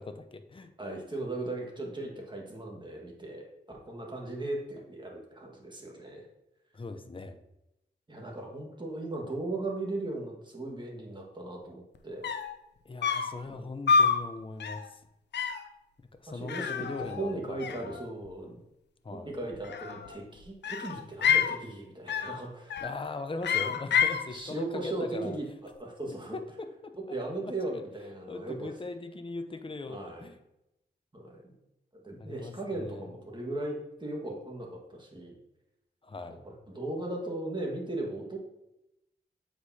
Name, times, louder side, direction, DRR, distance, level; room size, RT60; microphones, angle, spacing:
voice 1, 0.0-0.7 6.7-7.4 12.8-15.0 16.1-18.0 19.0-19.3 22.8-25.4 26.3-27.8 28.3-30.4 32.2-33.1 36.0-36.4, left 3 dB, 30° left, 8 dB, 0.6 m, -40 dB
voice 2, 0.8-6.2 8.1-12.3 13.5-13.7 16.3-16.9 17.2-18.6 19.1-22.8 23.9-24.0 24.3-25.4 25.8-26.4 27.1-28.7 29.9-30.3 31.1-31.5 31.9-35.4 36.3-38.4, right 2 dB, 25° right, -1 dB, 1.6 m, -37 dB
sound 1, 11.9-12.0 12.2-12.6 13.0-13.4 13.9-14.2 14.6-14.9 15.3-15.7 16.5-17.3 17.6-18.3 19.5-20.2 20.6-21.6 22.1-22.4 22.7-23.1 23.4-24.3, left 6 dB, 80° left, 0.5 m, -28 dB
8.0 x 4.8 x 2.8 m, 0.88 s
cardioid pair, 65°, 18 cm